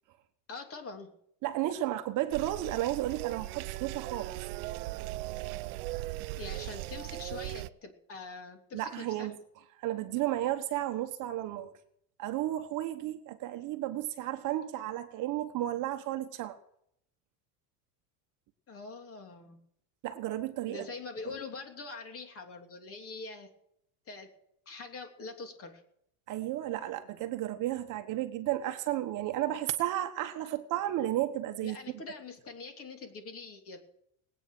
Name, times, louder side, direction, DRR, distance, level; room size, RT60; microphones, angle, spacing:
voice 1, 0.5-1.1 6.4-9.3 18.7-19.6 20.6-23.5 24.1-24.3 24.7-25.8 31.6-33.8, left 4 dB, 30° left, 3.0 m, -44 dB
voice 2, 1.4-4.4 8.7-9.3 9.8-11.7 12.2-16.6 20.0-20.9 26.3-31.8, right 14 dB, 45° right, 1.3 m, -33 dB
sound 1, 2.3-7.7, right 19 dB, 75° right, 0.8 m, -38 dB
20.0 x 9.1 x 6.2 m
supercardioid pair, 145°, 44 cm